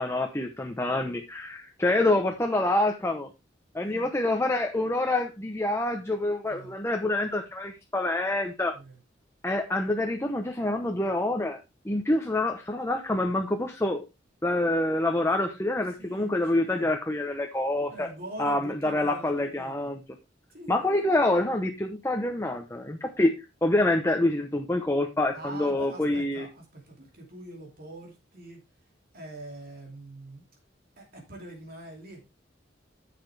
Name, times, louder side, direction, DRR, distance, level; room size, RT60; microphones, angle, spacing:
voice 1, 0.0-3.3 3.7-8.8 9.4-11.6 11.8-14.0 14.4-18.1 18.4-20.0 20.7-23.3 23.6-26.5, left 1 dB, 15° left, 4 dB, 0.8 m, -26 dB
voice 2, 3.8-4.1 6.5-6.7 8.7-9.0 16.0-16.9 17.9-19.9 20.5-21.2 25.3-28.6 29.1-30.4 31.0-32.2, right 1 dB, 55° right, 1 dB, 2.6 m, -44 dB
10.0 x 6.8 x 3.3 m, 0.25 s
head